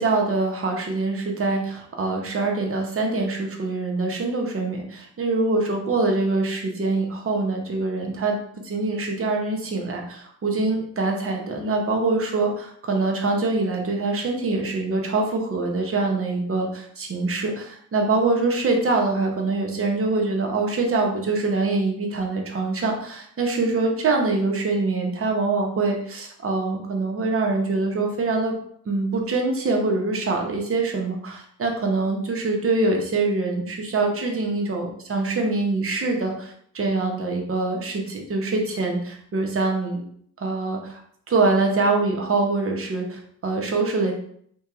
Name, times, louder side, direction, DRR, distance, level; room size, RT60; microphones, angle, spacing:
voice 1, 0.0-8.4 8.6-28.5 28.9-40.0 40.4-41.0 41.3-44.1, right 3 dB, 35° right, 1 dB, 0.8 m, -24 dB
2.7 x 2.3 x 2.4 m, 0.64 s
supercardioid pair, 50°, 40 cm